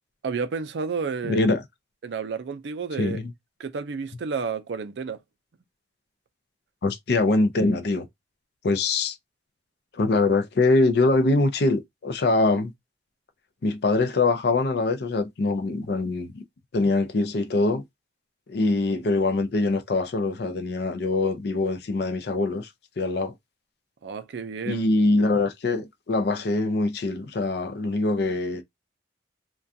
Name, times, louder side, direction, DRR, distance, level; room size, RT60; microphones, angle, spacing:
voice 1, 0.2-1.5 2.0-3.2 3.6-5.2 24.0-24.9, right 5 dB, 70° right, 0.4 m, -31 dB
voice 2, 1.2-1.6 3.0-3.3 6.8-8.1 8.6-9.2 9.9-12.7 13.6-16.4 16.7-17.8 18.5-22.7 23.0-23.3 24.7-28.6, left 2 dB, 60° left, 0.4 m, -23 dB
2.4 x 2.2 x 2.6 m
head